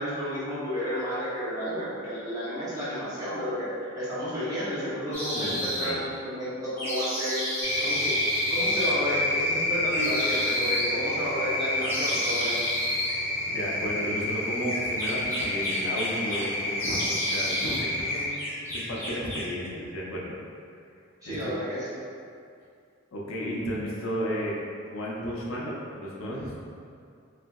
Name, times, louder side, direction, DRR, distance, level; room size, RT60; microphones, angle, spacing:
voice 1, 0.0-3.7 3.9-7.4 7.8-8.2 8.5-12.6 21.2-22.0, equal, 15° right, -11 dB, 0.7 m, -31 dB
sound 1, 5.1-5.9 6.8-8.9 9.9-10.9 11.8-13.1 14.6-16.5 16.7-17.8 18.1-19.5, equal, 10° left, 1.0 m, -32 dB
voice 2, 5.3-6.0 13.5-18.4 18.7-20.4 21.2-21.5 23.1-24.6 24.9-26.5, equal, 70° left, -4 dB, 0.5 m, -33 dB
sound 2, 7.6-18.3, left 1 dB, 30° left, 0.7 m, -29 dB
3.2 x 2.6 x 2.2 m, 2.3 s
head